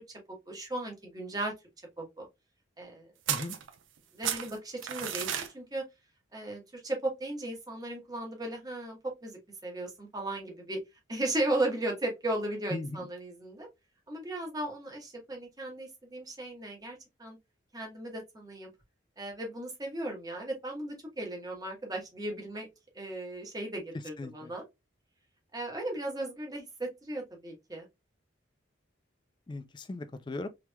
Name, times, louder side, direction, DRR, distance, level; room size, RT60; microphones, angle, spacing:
voice 1, 0.5-1.5 2.0-2.3 2.8-3.1 4.1-5.8 6.3-10.8 11.1-13.7 14.1-17.4 17.7-18.7 19.2-22.7 22.9-24.6 25.5-27.9, right 1 dB, 20° right, 1.1 m, -36 dB
sound 1, 3.3-4.0 4.2-5.5, right 9 dB, 90° right, 0.5 m, -33 dB
voice 2, 12.7-13.1 24.2-24.5 29.5-30.5, left 2 dB, 25° left, 0.3 m, -38 dB
3.3 x 2.9 x 2.2 m
head